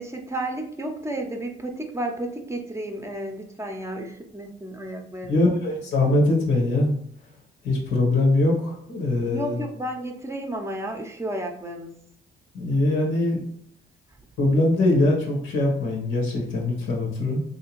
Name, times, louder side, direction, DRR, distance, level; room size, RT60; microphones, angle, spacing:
voice 1, 0.0-5.4 9.2-11.9, right 1 dB, 15° right, 3 dB, 0.6 m, -32 dB
voice 2, 5.3-6.9 7.6-9.6 12.5-13.4 14.4-17.4, left 2 dB, 85° left, 0 dB, 1.2 m, -22 dB
3.3 x 2.8 x 3.0 m, 0.69 s
cardioid pair, 90°, 20 cm